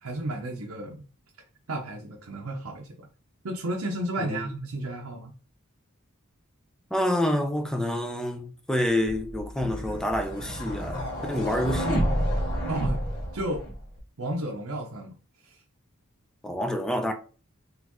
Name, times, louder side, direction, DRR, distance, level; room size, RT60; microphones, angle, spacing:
voice 1, 0.0-1.0 1.7-3.1 3.4-5.3 12.7-13.0 13.3-13.7 14.2-15.1 15.4-15.6, right 1 dB, 70° right, 0.7 m, -32 dB
voice 2, 6.9-12.2 16.4-17.1, left 1 dB, 5° left, 0.6 m, -28 dB
sound 1, 9.1-14.0, equal, 50° left, 1.6 m, -30 dB
4.2 x 3.1 x 3.0 m
head